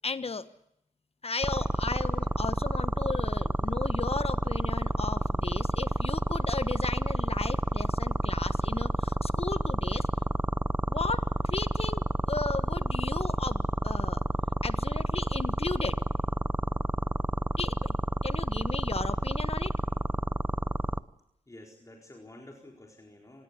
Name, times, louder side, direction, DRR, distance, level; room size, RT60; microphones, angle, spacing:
voice 1, 0.0-0.5 1.2-10.1 10.9-14.2 14.6-16.0 17.6-17.9 18.2-19.8, left 4 dB, 45° left, 12 dB, 1.4 m, -35 dB
sound 1, 1.4-21.0, right 1 dB, 10° right, 0.9 m, -29 dB
voice 2, 21.5-23.4, left 1 dB, 20° left, 0 dB, 4.4 m, -50 dB
26.5 x 19.5 x 8.3 m, 0.77 s
cardioid pair, 60°, 14 cm